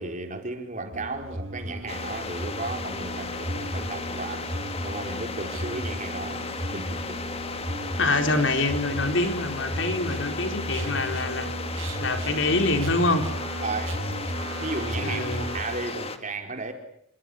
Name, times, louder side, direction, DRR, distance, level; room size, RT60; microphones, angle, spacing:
voice 1, 0.0-7.2 13.6-13.9 14.5-15.3 15.5-16.7, right 3 dB, 35° right, 5 dB, 4.7 m, -34 dB
sound 1, 0.9-15.6, equal, 70° right, 6.5 m, -34 dB
sound 2, 1.9-16.2, left 3 dB, 30° left, 2.3 m, -35 dB
voice 2, 8.0-11.5 12.0-13.3 15.0-15.5, left 2 dB, 60° left, 6 dB, 4.0 m, -25 dB
29.5 x 27.5 x 6.5 m, 0.68 s
head